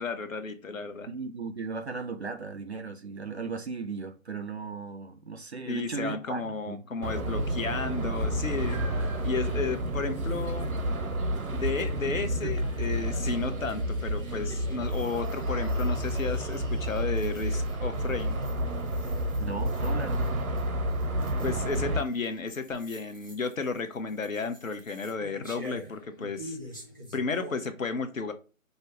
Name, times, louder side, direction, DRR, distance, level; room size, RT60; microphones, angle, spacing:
voice 1, 0.0-1.1 5.7-8.8 9.2-10.7 11.5-18.4 21.4-26.6 27.1-28.3, left 4 dB, 70° left, 0.9 m, -33 dB
voice 2, 1.1-6.8 12.4-12.5 19.4-20.4, right 4 dB, 55° right, 0.5 m, -36 dB
sound 1, 7.0-22.0, equal, 85° right, 0.8 m, -30 dB
Meow, 8.0-17.7, equal, 40° left, 1.0 m, -46 dB
sound 2, 12.5-27.6, equal, 15° left, 0.5 m, -49 dB
5.3 x 2.0 x 4.5 m
figure-of-eight pair, 145°, 41 cm